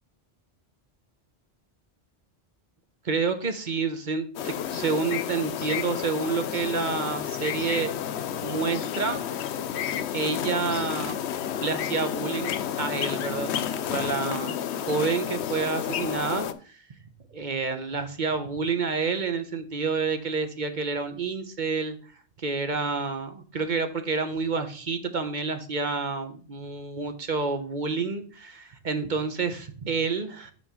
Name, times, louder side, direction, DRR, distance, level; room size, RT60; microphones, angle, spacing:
voice 1, 3.0-7.9 8.4-9.3 10.1-11.2 11.6-16.8 17.3-22.0 22.4-30.5, right 4 dB, 45° right, 8 dB, 1.0 m, -29 dB
sound 1, 4.4-16.5, left 9 dB, 80° left, 0.9 m, -31 dB
6.2 x 4.3 x 6.2 m, 0.41 s
omnidirectional pair, 1.1 m